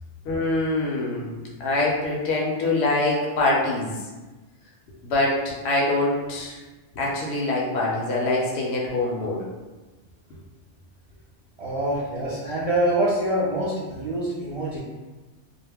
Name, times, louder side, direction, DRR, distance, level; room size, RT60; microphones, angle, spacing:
voice 1, 0.3-3.9 5.0-6.6 7.0-9.4, left 2 dB, 70° left, -3 dB, 0.8 m, -24 dB
voice 2, 11.6-14.8, right 1 dB, 55° right, -8 dB, 0.4 m, -25 dB
2.3 x 2.0 x 3.3 m, 1.2 s
omnidirectional pair, 1.2 m